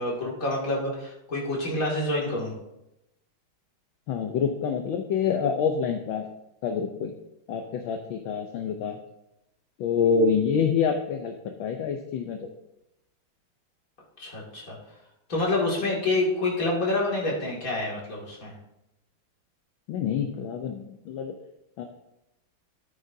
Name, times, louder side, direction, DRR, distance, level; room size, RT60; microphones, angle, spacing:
voice 1, 0.0-2.5 14.2-14.7 15.3-18.5, left 2 dB, 40° left, -3 dB, 2.8 m, -27 dB
voice 2, 4.1-6.2 6.6-7.1 7.5-9.0 9.8-12.4 19.9-21.3 21.8-21.9, left 6 dB, 75° left, 4 dB, 1.5 m, -27 dB
13.0 x 9.0 x 2.7 m, 0.88 s
omnidirectional pair, 2.3 m